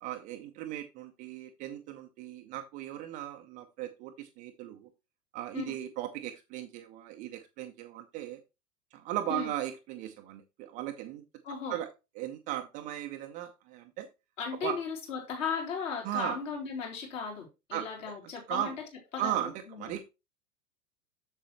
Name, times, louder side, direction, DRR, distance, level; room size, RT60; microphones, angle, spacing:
voice 1, 0.0-4.9 5.3-8.4 8.9-11.2 11.7-11.9 12.2-14.1 14.6-14.8 16.0-16.4 17.7-17.9 18.5-18.7 19.2-19.5 19.8-20.0, right 13 dB, 20° right, 0.4 m, -37 dB
voice 2, 11.4-11.8 14.4-18.7 19.1-19.9, left 6 dB, 55° left, 3.6 m, -36 dB
7.4 x 6.6 x 3.1 m
figure-of-eight pair, 90°, 45 cm